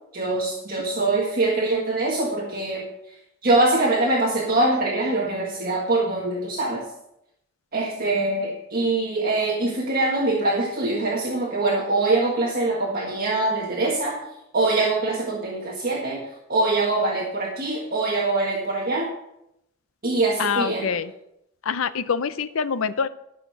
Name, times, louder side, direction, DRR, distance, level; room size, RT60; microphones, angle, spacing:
voice 1, 0.1-3.2 3.4-6.8 7.7-14.2 14.5-19.1 20.0-21.0, right 2 dB, 45° right, -3 dB, 1.6 m, -23 dB
voice 2, 20.4-21.1 21.6-23.1, left 6 dB, 75° left, 14 dB, 0.6 m, -25 dB
12.5 x 6.6 x 5.7 m, 0.82 s
head